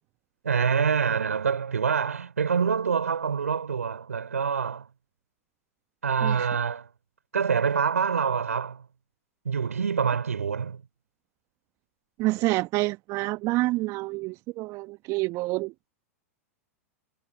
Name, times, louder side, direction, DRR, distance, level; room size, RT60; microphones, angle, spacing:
voice 1, 0.4-4.9 6.0-6.9 7.3-8.9 9.4-10.8, right 6 dB, 80° right, 5.4 m, -26 dB
voice 2, 12.2-15.7, right 21 dB, 40° right, 1.2 m, -28 dB
figure-of-eight pair, 95°, 8 cm